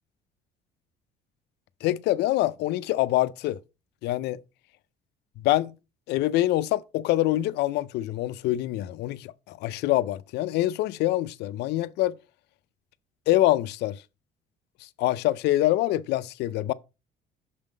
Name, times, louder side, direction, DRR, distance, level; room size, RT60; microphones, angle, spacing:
voice 1, 1.8-3.6 4.0-4.4 5.4-5.7 6.1-12.2 13.3-14.0 15.0-16.7, left 15 dB, 80° left, 0.5 m, -25 dB
6.5 x 3.7 x 5.0 m
cardioid pair, 110°, 17 cm